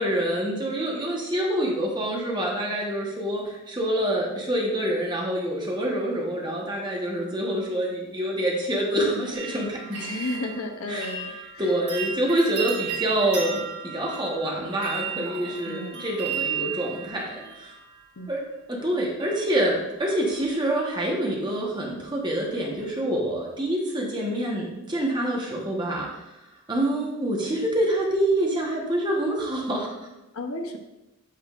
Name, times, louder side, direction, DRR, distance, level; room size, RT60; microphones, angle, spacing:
voice 1, 0.0-9.8 10.9-17.7 18.3-18.4 18.7-26.3 26.7-30.0, right 1 dB, 20° right, -2 dB, 1.1 m, -26 dB
sound 1, 9.3-18.3 19.2-19.7 20.0-20.5 20.9-21.0, right 7 dB, 85° right, 2.5 m, -35 dB
voice 2, 9.9-11.3 15.1-16.0 18.2-18.3 30.3-30.8, left 2 dB, 80° left, 5 dB, 0.8 m, -33 dB
8.3 x 6.0 x 2.5 m, 0.98 s
head